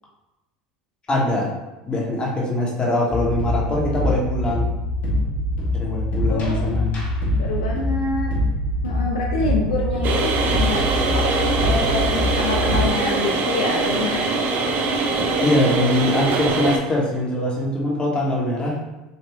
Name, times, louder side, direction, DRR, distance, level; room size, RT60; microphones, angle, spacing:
voice 1, 1.1-1.5 1.9-4.7 5.7-7.0 15.4-18.8, left 1 dB, 25° left, -3 dB, 1.1 m, -22 dB
sound 1, 3.1-12.9, left 1 dB, 45° left, 1.1 m, -24 dB
voice 2, 6.3-6.9 7.4-8.3 8.8-11.3 11.6-14.3, left 3 dB, 85° left, -1 dB, 0.5 m, -26 dB
sound 2, 10.0-16.8, right 3 dB, 50° right, 0.5 m, -22 dB
3.4 x 2.4 x 3.1 m, 1.0 s
hypercardioid pair, 85°, 4 cm